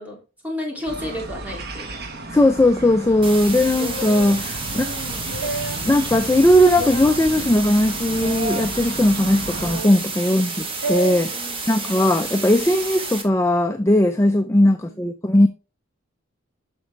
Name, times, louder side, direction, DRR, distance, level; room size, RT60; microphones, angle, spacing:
voice 1, 0.0-2.0 4.7-5.4 10.2-10.8 11.3-12.1 14.7-15.1, left 1 dB, 10° right, 2.4 m, -34 dB
sound 1, 0.9-9.8, right 2 dB, 50° right, 1.3 m, -34 dB
voice 2, 2.3-4.9 5.8-11.4 11.7-15.5, left 1 dB, 15° left, 0.4 m, -18 dB
sound 2, 3.2-13.2, right 3 dB, 25° right, 1.3 m, -31 dB
sound 3, 3.8-4.3 5.2-5.9 6.8-7.2 8.2-8.7 9.6-10.1 10.8-11.2, right 2 dB, 85° right, 1.8 m, -29 dB
8.7 x 6.3 x 3.3 m
head